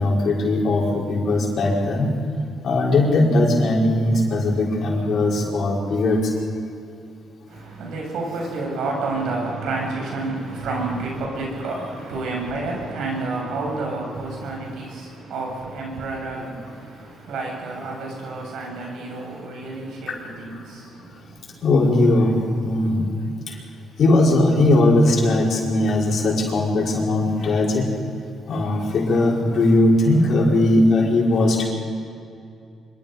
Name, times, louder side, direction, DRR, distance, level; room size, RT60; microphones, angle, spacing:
voice 1, 0.0-2.1 2.6-6.2 20.1-20.2 21.6-22.3 22.6-23.1 23.5-23.6 24.0-27.9 28.5-31.7, left 2 dB, 60° left, -2 dB, 5.6 m, -19 dB
voice 2, 7.5-21.4, right 3 dB, 80° right, -1 dB, 7.6 m, -30 dB
25.5 x 24.0 x 5.5 m, 2.5 s
cardioid pair, 90°, 0 cm